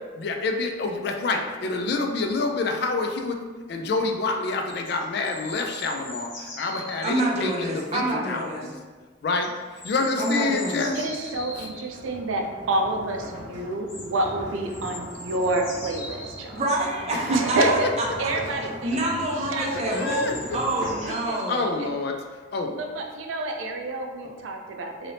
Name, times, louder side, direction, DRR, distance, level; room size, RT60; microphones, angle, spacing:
voice 1, 0.2-3.4 3.7-8.7 9.2-11.0 11.5-11.7 17.1-17.9 18.3-18.7 19.7-20.6 21.1-22.2 22.5-22.9 24.2-24.4, left 3 dB, 55° left, 4 dB, 0.3 m, -28 dB
sound 1, 2.4-2.5 4.4-7.2 9.4-11.9 13.9-14.3 14.7-16.8 18.5-18.6 18.9-19.0 19.9-21.5 22.0-22.1, left 1 dB, 80° left, 1.1 m, -41 dB
voice 2, 7.0-8.6 10.2-10.9 16.5-18.1 18.8-21.6, right 1 dB, 35° right, -2 dB, 0.5 m, -27 dB
sound 2, 10.9-21.7, equal, 60° right, 1.3 m, -41 dB
voice 3, 10.9-16.6 17.3-17.9 18.2-19.0 19.5-20.2 21.0-21.4 22.8-25.1, right 2 dB, 85° right, 3 dB, 0.4 m, -28 dB
3.3 x 2.7 x 2.6 m, 1.4 s
head